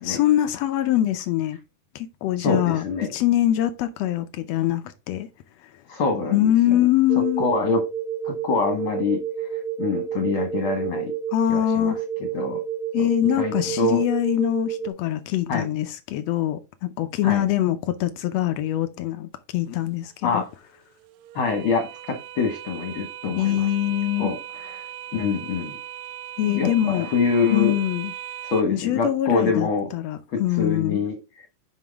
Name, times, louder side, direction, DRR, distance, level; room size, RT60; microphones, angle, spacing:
voice 1, 0.1-1.6 1.9-2.8 3.1-5.3 6.3-7.5 11.3-12.0 12.9-20.4 23.4-24.3 26.4-27.1 27.5-28.1 28.7-31.0, left 13 dB, 85° left, 1.4 m, -23 dB
voice 2, 2.4-3.1 5.9-6.8 7.4-7.8 8.2-11.1 11.5-12.0 12.3-12.6 13.0-13.1 13.4-14.0 15.5-15.7 17.2-17.4 20.2-20.5 21.3-23.7 24.2-25.7 26.5-27.8 28.4-29.9 30.3-31.5, left 4 dB, 55° left, 1.6 m, -25 dB
sound 1, 7.1-14.9, right 9 dB, 70° right, 2.0 m, -30 dB
sound 2, 19.7-28.6, right 11 dB, 90° right, 2.3 m, -39 dB
7.3 x 5.8 x 3.5 m
omnidirectional pair, 3.8 m